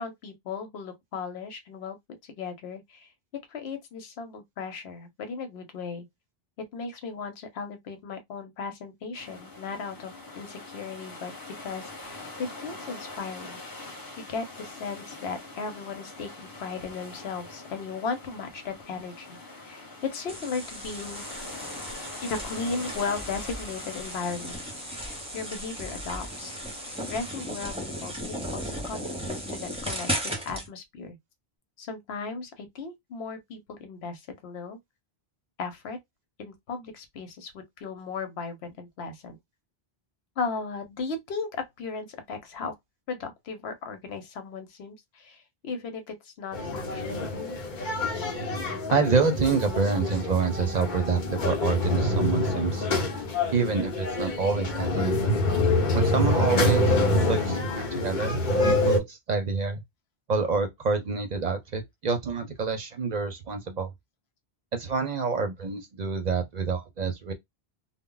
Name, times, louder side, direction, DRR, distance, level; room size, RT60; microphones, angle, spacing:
voice 1, 0.0-2.0 2.2-3.1 3.5-6.1 6.6-11.3 11.6-13.6 13.9-19.4 19.6-21.2 22.2-24.6 24.9-26.6 27.1-31.2 31.8-34.8 35.6-36.0 36.4-39.4 40.4-42.7 43.1-47.6, left 4 dB, 80° left, 1.0 m, -36 dB
sound 1, 9.1-27.5, left 2 dB, 20° left, 1.0 m, -44 dB
sound 2, 20.3-30.7, equal, 5° right, 0.6 m, -36 dB
sound 3, 46.5-59.0, left 2 dB, 55° left, 0.8 m, -26 dB
voice 2, 48.9-52.9 53.5-55.1 55.9-57.6 57.9-59.8 60.3-63.9 64.7-67.3, right 4 dB, 50° right, 0.6 m, -27 dB
2.2 x 2.0 x 3.7 m
omnidirectional pair, 1.0 m